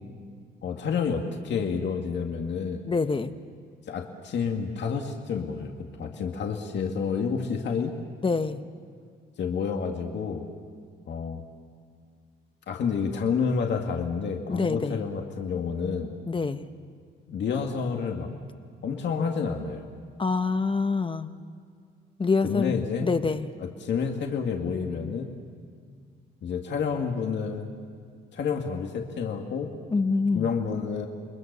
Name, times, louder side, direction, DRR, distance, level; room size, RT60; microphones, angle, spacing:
voice 1, 0.6-2.8 3.9-7.9 9.4-10.4 11.1-11.4 12.7-16.1 17.3-18.3 18.8-19.9 22.4-23.1 23.6-25.3 26.4-27.7 28.3-29.7 30.3-31.1, left 6 dB, 65° left, 2 dB, 2.1 m, -29 dB
voice 2, 2.9-3.3 8.2-8.6 14.5-15.0 16.3-16.6 20.2-21.3 22.2-23.5 29.9-30.5, left 4 dB, 25° left, 9 dB, 1.0 m, -26 dB
29.5 x 21.5 x 6.8 m, 2.1 s
cardioid pair, 90°, 20 cm